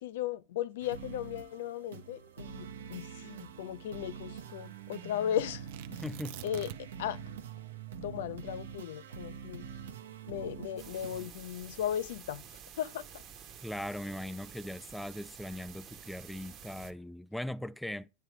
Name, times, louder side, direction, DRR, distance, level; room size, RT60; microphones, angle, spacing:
voice 1, 0.0-5.7 5.9-6.0 6.4-6.7 7.0-7.2 8.0-9.7 10.3-12.4 12.8-13.0, left 10 dB, 75° left, 0.6 m, -36 dB
sound 1, 0.8-11.3, right 7 dB, 85° right, 0.9 m, -45 dB
Tearing, 5.7-7.1 7.4-7.5 8.0-10.4 11.1-11.5, right 15 dB, 70° right, 0.6 m, -47 dB
voice 2, 5.9-6.4 13.6-18.1, left 1 dB, ahead, 0.4 m, -39 dB
sound 2, 10.8-16.9, right 8 dB, 40° right, 1.1 m, -50 dB
9.3 x 3.3 x 4.9 m
hypercardioid pair, 100°, 0 cm